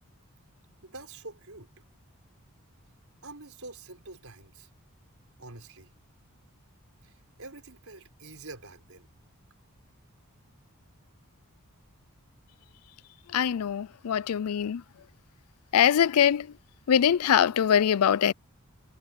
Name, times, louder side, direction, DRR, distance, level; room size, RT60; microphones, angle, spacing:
voice 1, 0.8-1.7 3.2-4.7 5.4-5.9 7.0-7.1 7.4-9.1, right 2 dB, 65° right, 6.4 m, -46 dB
voice 2, 13.3-14.8 15.7-16.5 16.9-18.3, left 9 dB, 75° left, 0.4 m, -23 dB
head